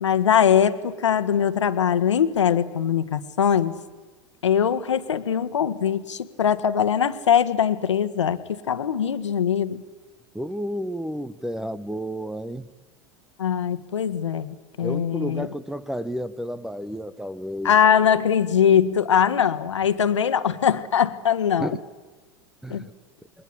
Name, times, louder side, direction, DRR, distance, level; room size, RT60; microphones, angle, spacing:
voice 1, 0.0-3.7 4.4-9.8 13.4-15.5 17.6-21.7 22.7-22.9, left 8 dB, 70° left, 1.5 m, -21 dB
voice 2, 10.3-12.7 14.8-17.8 21.6-21.8 22.6-22.9, equal, 5° right, 0.9 m, -31 dB
27.5 x 22.0 x 9.9 m
figure-of-eight pair, 90°, 16 cm